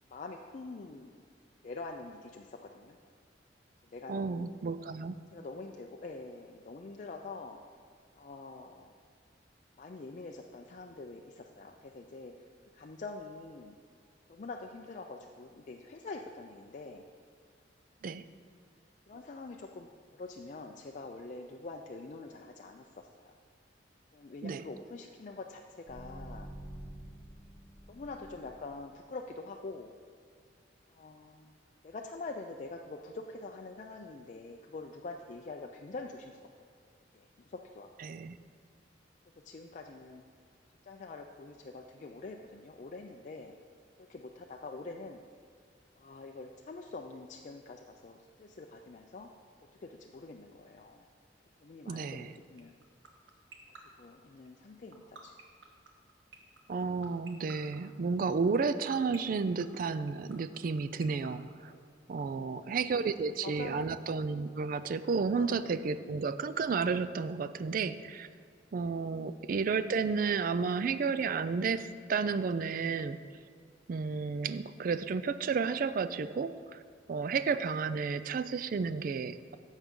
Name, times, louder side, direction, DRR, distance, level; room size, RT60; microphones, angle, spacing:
voice 1, 0.1-1.1 1.6-3.0 3.8-4.5 5.3-7.6 8.2-8.9 9.8-12.3 12.7-13.7 14.3-17.0 19.1-23.3 24.1-26.5 27.9-29.9 30.9-31.6 31.8-36.5 37.1-37.9 39.4-40.2 40.8-43.5 44.1-45.2 46.0-49.3 49.8-51.1 51.6-52.7 54.0-55.3 62.3-64.0 65.3-65.7 69.0-69.4, left 3 dB, 40° left, 2 dB, 0.4 m, -45 dB
voice 2, 4.1-5.2 18.0-18.3 24.4-24.6 38.0-38.4 51.9-52.3 56.7-61.7 62.1-68.3 68.7-73.2 73.9-76.8 77.1-79.6, right 5 dB, 50° right, 13 dB, 0.3 m, -32 dB
sound 1, 25.9-29.0, right 1 dB, 15° right, 1.0 m, -48 dB
sound 2, 52.6-62.2, right 4 dB, 80° right, 1.2 m, -50 dB
11.0 x 7.2 x 3.7 m, 2.2 s
head